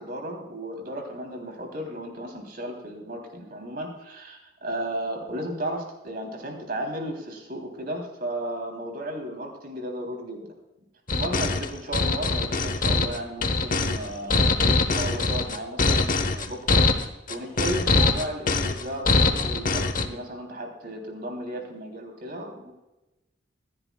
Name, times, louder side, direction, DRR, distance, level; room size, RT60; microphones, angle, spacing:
voice 1, 0.0-10.5 11.1-16.8 17.3-22.7, right 1 dB, 50° right, 2 dB, 3.4 m, -34 dB
sound 1, 11.1-20.1, left 3 dB, 45° left, 0.9 m, -23 dB
25.0 x 10.5 x 2.4 m, 0.99 s
head